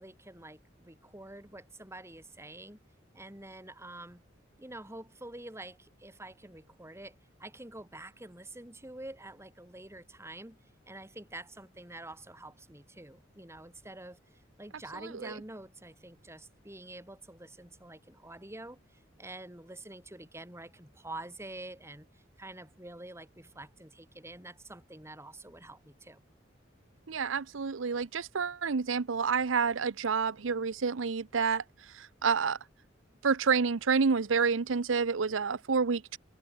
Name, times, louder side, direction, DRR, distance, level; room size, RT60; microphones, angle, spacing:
voice 1, 0.0-2.8 3.1-4.2 4.6-10.6 10.9-26.2, right 2 dB, 15° right, 5.3 m, -47 dB
voice 2, 27.1-31.6 32.0-32.6 33.2-36.2, right 5 dB, 85° right, 0.7 m, -29 dB
head